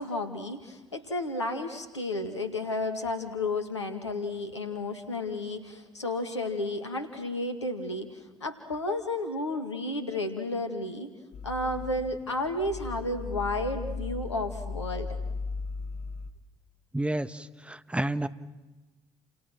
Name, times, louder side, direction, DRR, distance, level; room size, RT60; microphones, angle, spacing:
voice 1, 0.0-11.1 11.4-15.1, left 2 dB, 85° left, 6 dB, 2.1 m, -32 dB
sound 1, 11.3-16.3, left 4 dB, 55° left, 1.8 m, -37 dB
voice 2, 16.9-18.3, right 1 dB, 10° right, 12 dB, 1.3 m, -30 dB
29.5 x 28.0 x 6.0 m, 1.1 s
figure-of-eight pair, 50°, 14 cm